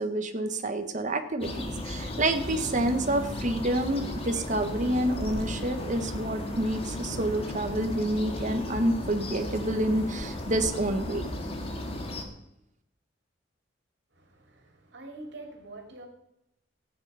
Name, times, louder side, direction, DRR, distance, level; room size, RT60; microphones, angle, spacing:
voice 1, 0.0-11.3, right 1 dB, 40° right, 7 dB, 1.3 m, -28 dB
sound 1, 1.4-12.2, left 1 dB, 30° left, 1.8 m, -35 dB
voice 2, 14.1-16.1, right 2 dB, 65° right, 3 dB, 2.9 m, -45 dB
14.5 x 9.2 x 5.6 m, 0.83 s
head